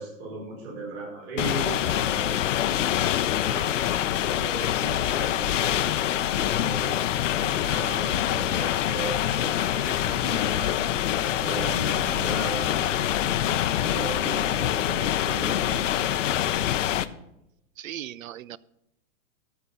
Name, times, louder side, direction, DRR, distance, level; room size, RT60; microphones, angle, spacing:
voice 1, 0.0-2.4 2.7-7.0 7.4-10.9 11.4-17.0, right 2 dB, 50° right, -2 dB, 4.8 m, -38 dB
sound 1, 1.4-17.1, left 11 dB, 70° left, 0.7 m, -25 dB
voice 2, 17.8-18.6, right 11 dB, 85° right, 21 dB, 0.6 m, -37 dB
13.0 x 5.9 x 6.8 m, 0.83 s
hypercardioid pair, 165°, 39 cm